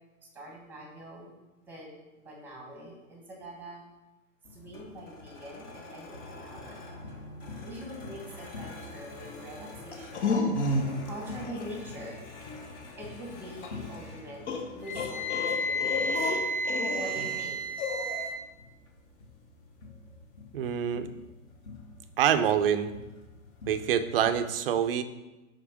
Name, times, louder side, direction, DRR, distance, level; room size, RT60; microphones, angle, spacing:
voice 1, 0.3-1.3 1.7-3.8 4.5-6.9 7.6-10.8 11.0-12.2 13.0-17.7, equal, 5° right, 0 dB, 1.2 m, -44 dB
sound 1, 4.4-24.3, left 3 dB, 20° left, 0.6 m, -46 dB
sound 2, 9.9-11.1 11.5-11.7 13.6-13.7 14.5-17.5 17.8-18.3, left 3 dB, 50° left, 1.1 m, -31 dB
Wind instrument woodwind instrument, 14.8-18.4, equal, 75° left, 1.5 m, -31 dB
voice 2, 20.5-21.1 22.2-22.9 23.7-25.0, right 9 dB, 45° right, 10 dB, 0.5 m, -26 dB
5.8 x 4.4 x 4.9 m, 1.1 s
hypercardioid pair, 145°, 42 cm